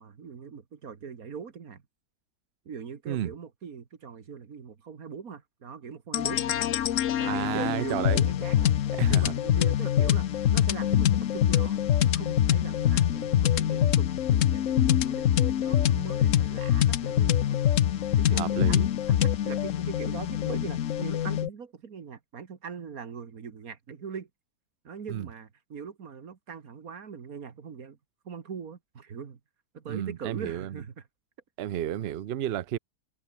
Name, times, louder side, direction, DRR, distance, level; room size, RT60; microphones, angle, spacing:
voice 1, 0.0-1.8 2.7-6.7 7.1-17.6 18.2-24.3 24.8-28.0 28.2-29.4 29.7-31.0, right 6 dB, 55° right, 2.1 m, -41 dB
sound 1, 6.1-21.5, left 10 dB, 55° left, 0.9 m, -24 dB
voice 2, 7.2-8.3 9.0-9.3 18.3-18.9 25.1-25.3 29.9-30.8 31.6-32.8, right 11 dB, 75° right, 0.5 m, -31 dB
omnidirectional pair, 1.9 m